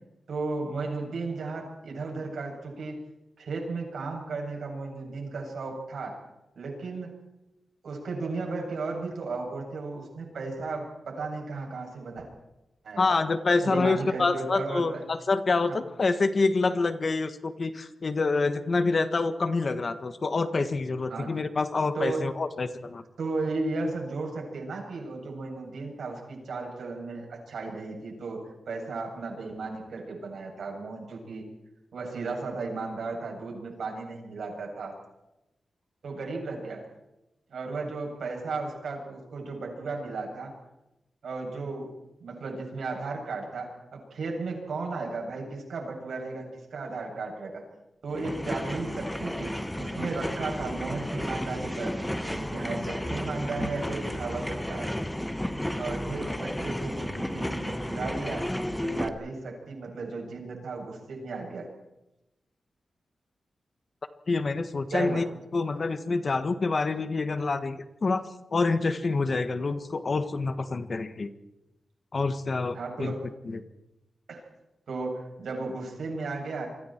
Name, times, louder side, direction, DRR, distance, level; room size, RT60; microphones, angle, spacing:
voice 1, 0.3-3.0 3.4-6.2 6.6-7.1 7.8-12.3 12.8-13.0 13.6-15.0 21.1-21.3 21.9-22.2 23.2-31.5 31.9-34.9 36.0-36.8 37.5-40.5 41.2-41.9 42.2-47.6 48.0-54.9 55.7-58.5 58.8-61.7 64.9-65.3 72.7-73.2 74.3-74.4 74.9-76.7, right 3 dB, 80° right, 1 dB, 7.8 m, -35 dB
voice 2, 13.0-23.0 64.3-65.3 65.5-71.3 72.1-73.1 73.5-73.6, left 3 dB, 40° left, 10 dB, 1.5 m, -27 dB
sound 1, 48.1-59.1, left 1 dB, 5° left, 1.3 m, -32 dB
28.5 x 24.5 x 4.6 m, 0.94 s
wide cardioid pair, 130°, 0 cm